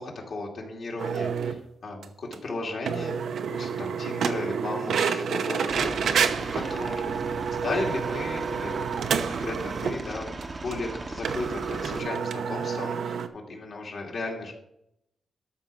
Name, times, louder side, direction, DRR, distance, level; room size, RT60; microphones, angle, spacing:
voice 1, 0.0-6.2 6.5-8.9 9.3-13.2 13.5-14.5, left 2 dB, 55° left, -1 dB, 2.6 m, -35 dB
sound 1, 1.0-1.6 2.0-2.1 2.3-2.4 2.8-10.0 10.4-10.5 10.7-10.8 11.2-13.3, right 6 dB, 85° right, 0.9 m, -29 dB
Aircraft, 5.7-12.0, right 3 dB, 25° right, 0.8 m, -37 dB
13.0 x 5.1 x 6.1 m, 0.77 s
wide cardioid pair, 170°, 0 cm